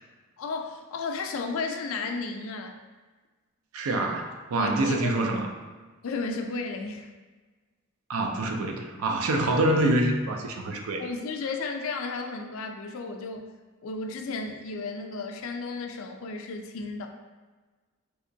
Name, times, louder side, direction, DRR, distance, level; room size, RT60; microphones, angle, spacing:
voice 1, 0.4-2.8 4.6-5.1 6.0-7.1 11.0-13.5 13.8-17.1, left 4 dB, 70° left, 4 dB, 0.4 m, -33 dB
voice 2, 3.7-5.5 8.1-11.0, right 1 dB, 85° right, 2 dB, 0.4 m, -26 dB
3.4 x 2.9 x 2.6 m, 1.3 s
head